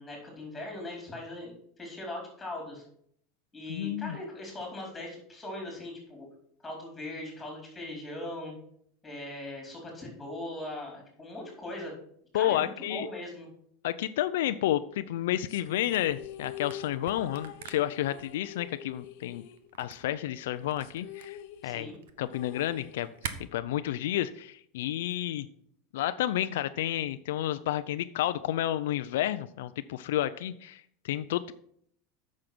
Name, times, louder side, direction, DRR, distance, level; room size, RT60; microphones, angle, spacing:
voice 1, 0.0-2.8 3.5-6.3 6.6-8.5 9.0-11.9 12.3-13.5 21.6-21.9, left 1 dB, 10° left, 0 dB, 4.5 m, -40 dB
voice 2, 3.7-4.2 12.3-13.1 13.8-19.4 19.8-21.4 21.6-21.9 22.2-23.1 23.5-25.5 25.9-31.5, left 13 dB, 85° left, 12 dB, 0.5 m, -30 dB
sound 1, 15.5-20.1 20.4-20.5 20.8-23.5, left 11 dB, 65° left, 0.9 m, -46 dB
Camera, 15.8-23.3, right 8 dB, 85° right, 1.1 m, -45 dB
8.8 x 6.4 x 6.0 m, 0.65 s
supercardioid pair, 150°, 0 cm